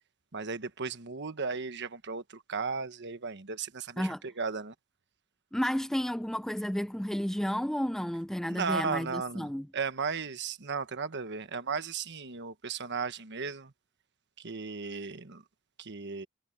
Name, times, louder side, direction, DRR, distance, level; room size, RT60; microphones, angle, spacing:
voice 1, 0.3-4.7 8.5-13.7 14.4-15.4 15.8-16.3, right 5 dB, 55° right, 1.3 m, -35 dB
voice 2, 5.5-9.7, equal, ahead, 0.4 m, -32 dB
head